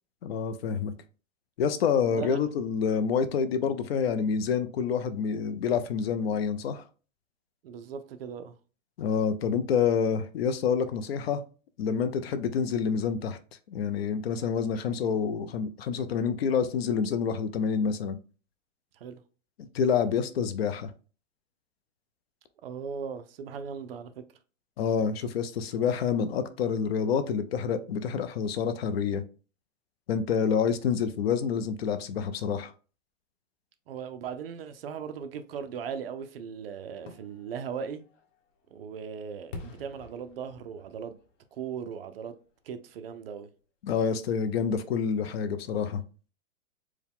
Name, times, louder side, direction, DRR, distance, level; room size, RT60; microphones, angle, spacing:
voice 1, 0.2-0.9 1.6-6.8 9.0-11.4 11.8-13.4 13.7-18.2 19.6-20.9 24.8-29.2 30.1-32.7 43.8-46.0, left 6 dB, 55° left, 0.5 m, -27 dB
voice 2, 2.1-2.4 7.6-8.6 18.9-19.2 22.6-24.1 33.9-38.0 38.7-41.2 41.5-42.3 42.6-43.5, right 7 dB, 50° right, 0.5 m, -38 dB
Fireworks, 36.9-42.7 43.1-43.2, left 3 dB, 75° left, 1.1 m, -49 dB
4.6 x 2.2 x 3.5 m
hypercardioid pair, 165°, 38 cm